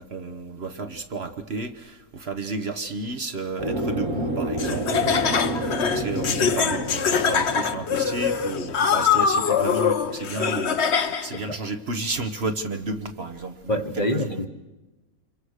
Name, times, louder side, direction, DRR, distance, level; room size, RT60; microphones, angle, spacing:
voice 1, 0.0-14.5, right 3 dB, 45° right, 1.3 m, -32 dB
sound 1, 3.6-10.4, right 1 dB, 75° right, 3.4 m, -31 dB
Laughter, 4.6-11.4, left 7 dB, 50° left, 1.2 m, -23 dB
voice 2, 13.7-14.5, left 1 dB, 30° left, 1.3 m, -26 dB
27.0 x 23.0 x 6.5 m
omnidirectional pair, 1.5 m